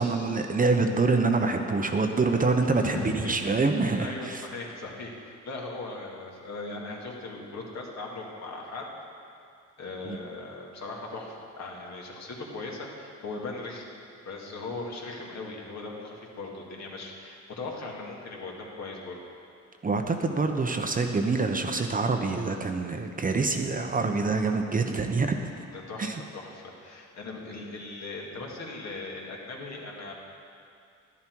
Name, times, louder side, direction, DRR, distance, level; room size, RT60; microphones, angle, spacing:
voice 1, 0.0-4.4 10.1-10.2 19.8-25.4 26.0-26.2, right 3 dB, 30° right, 5 dB, 0.9 m, -26 dB
voice 2, 2.8-3.5 4.0-8.9 9.8-13.9 14.3-19.2 25.7-30.1, left 3 dB, 60° left, -2 dB, 2.3 m, -39 dB
11.5 x 11.0 x 4.6 m, 2.5 s
cardioid pair, 90°, 30 cm